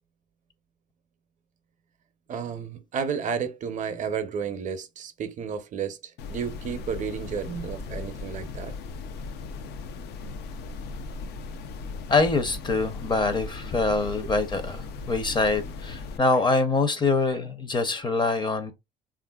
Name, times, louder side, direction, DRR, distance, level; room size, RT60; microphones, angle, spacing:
voice 1, 2.3-8.7, right 6 dB, 50° right, 0.5 m, -32 dB
sound 1, 6.2-16.2, left 4 dB, 75° left, 0.4 m, -37 dB
voice 2, 12.1-18.7, left 3 dB, 25° left, 0.6 m, -24 dB
3.2 x 2.4 x 2.2 m
cardioid pair, 110°, 17 cm